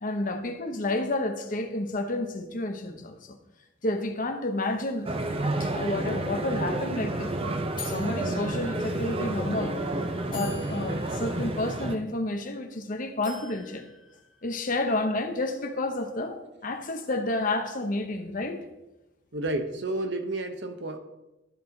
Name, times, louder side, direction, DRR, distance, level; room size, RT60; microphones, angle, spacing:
voice 1, 0.0-3.4 3.8-7.3 7.8-13.9 14.4-18.6, left 2 dB, 40° left, 0.8 m, -30 dB
sound 1, 5.1-12.0, right 2 dB, 25° right, 0.5 m, -30 dB
sound 2, 7.8-9.2 9.8-9.9 10.3-12.7 13.2-14.9, left 3 dB, 20° left, 1.9 m, -46 dB
voice 2, 19.3-21.0, right 2 dB, 55° right, 0.8 m, -31 dB
12.5 x 5.5 x 3.9 m
head